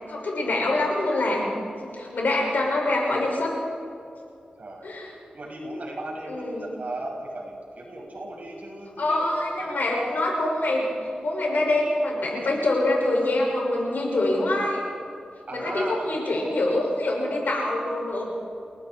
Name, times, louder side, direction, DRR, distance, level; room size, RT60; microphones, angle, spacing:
voice 1, 0.1-1.4 1.8-3.5 4.8-5.1 6.3-6.7 9.0-10.9 11.2-14.8 15.5-18.2, left 2 dB, 80° left, -2 dB, 6.5 m, -25 dB
voice 2, 4.6-4.9 5.3-9.8 15.5-16.2, right 1 dB, 55° right, -3 dB, 6.8 m, -36 dB
29.5 x 19.0 x 4.7 m, 2.6 s
wide cardioid pair, 90°, 3 cm